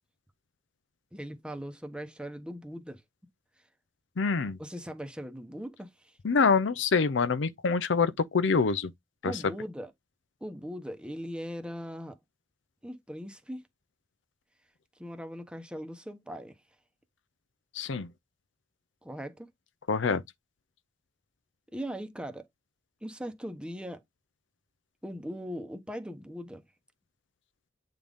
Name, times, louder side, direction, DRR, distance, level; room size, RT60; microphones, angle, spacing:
voice 1, 1.1-3.0 4.6-6.1 9.2-9.9 10.4-12.2 12.8-13.6 15.0-16.6 19.0-19.5 21.7-22.5 23.0-24.0 25.0-26.6, equal, 5° right, 1.0 m, -39 dB
voice 2, 4.2-4.6 6.2-8.9 9.2-9.5 17.7-18.1 19.9-20.2, left 5 dB, 70° left, 0.6 m, -26 dB
8.6 x 3.8 x 3.5 m
head